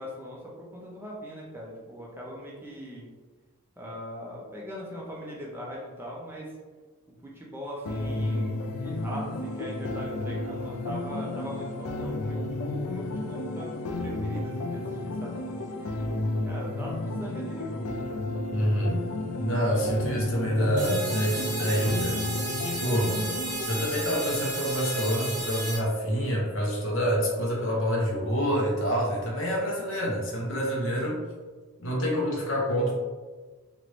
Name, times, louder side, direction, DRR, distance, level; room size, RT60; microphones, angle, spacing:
voice 1, 0.0-3.1 3.8-6.5 7.1-16.1 16.4-16.9 17.2-18.0, equal, 10° right, -4 dB, 0.5 m, -40 dB
sound 1, 7.9-23.9, left 2 dB, 90° left, 0.4 m, -32 dB
voice 2, 18.5-19.0 19.4-22.2 22.6-23.2 23.6-31.2 31.8-32.9, equal, 60° left, -2 dB, 0.8 m, -27 dB
sound 2, 20.8-25.8, right 2 dB, 35° right, 1.0 m, -33 dB
3.2 x 2.5 x 3.0 m, 1.4 s
head